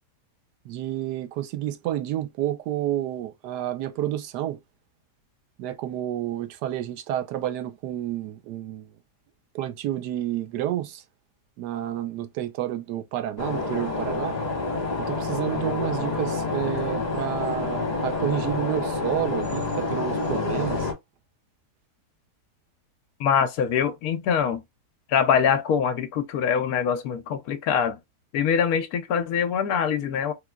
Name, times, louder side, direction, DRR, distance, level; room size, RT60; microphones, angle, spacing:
voice 1, 0.6-4.6 5.6-8.9 9.5-11.0 11.6-14.4 15.0-20.9, right 12 dB, 85° right, 1.2 m, -30 dB
sound 1, 13.4-20.9, left 3 dB, 30° left, 1.1 m, -28 dB
voice 2, 23.2-24.6 25.1-28.0 28.3-30.3, left 7 dB, 70° left, 1.0 m, -24 dB
3.6 x 3.1 x 2.3 m
omnidirectional pair, 1.7 m